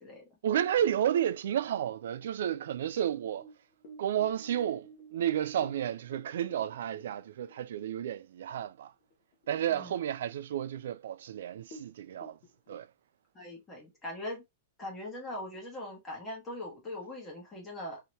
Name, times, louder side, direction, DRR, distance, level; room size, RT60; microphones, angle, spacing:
voice 1, 0.4-3.4 4.0-4.9 5.1-8.9 9.5-12.4 12.7-12.9, right 10 dB, 75° right, 0.3 m, -31 dB
sound 1, 3.4-8.2 8.5-8.6 9.0-9.5 9.9-10.0 10.7-10.8 11.1-11.2 11.6-12.8, right 1 dB, 40° left, 0.9 m, -52 dB
voice 2, 13.3-14.4 14.8-18.0, left 1 dB, 15° left, 1.2 m, -41 dB
2.8 x 2.8 x 3.1 m
supercardioid pair, 170°, 0 cm